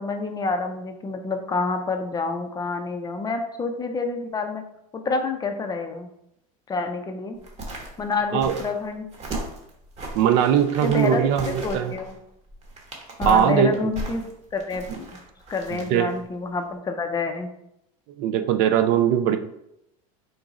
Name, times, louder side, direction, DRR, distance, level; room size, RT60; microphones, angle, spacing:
voice 1, 0.0-4.6 4.9-6.1 6.7-7.4 8.0-9.1 10.8-12.2 13.2-14.2 14.5-15.2 15.5-17.5, left 4 dB, 20° left, 5 dB, 0.5 m, -28 dB
sound 1, 7.4-16.2 16.5-16.6, right 1 dB, 35° right, 1.1 m, -36 dB
voice 2, 10.1-11.9 13.2-13.9 15.7-16.1 18.2-19.4, right 9 dB, 60° right, 9 dB, 0.4 m, -20 dB
3.9 x 2.3 x 4.0 m, 0.79 s
supercardioid pair, 100°, 19 cm